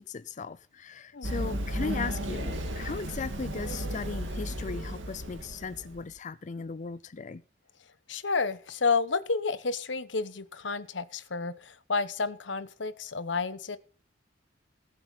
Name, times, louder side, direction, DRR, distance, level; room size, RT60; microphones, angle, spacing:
voice 1, 0.0-7.4, left 4 dB, 40° left, 0.5 m, -37 dB
Run, 1.2-6.0, right 1 dB, 85° right, 2.2 m, -34 dB
voice 2, 8.1-13.8, left 4 dB, 75° left, 1.1 m, -30 dB
19.0 x 7.9 x 4.1 m
head